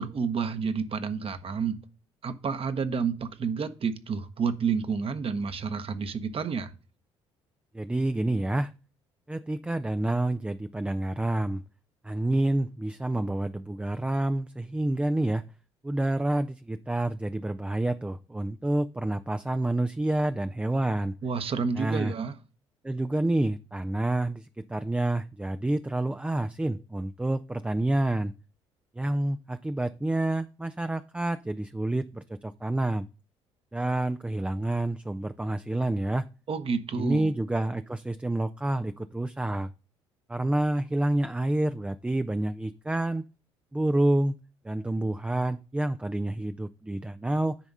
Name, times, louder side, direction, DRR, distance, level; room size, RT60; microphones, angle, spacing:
voice 1, 0.0-1.8 2.2-6.7 21.2-22.3 36.5-37.3, right 5 dB, 40° right, 1.1 m, -30 dB
voice 2, 7.7-8.7 9.3-11.6 12.0-15.4 15.8-21.1 21.7-22.1 22.8-28.3 28.9-33.1 33.7-36.3 36.9-39.7 40.3-43.2 43.7-44.3 44.6-47.6, right 1 dB, 10° right, 0.4 m, -28 dB
10.0 x 3.5 x 5.5 m
hypercardioid pair, 50°, 14 cm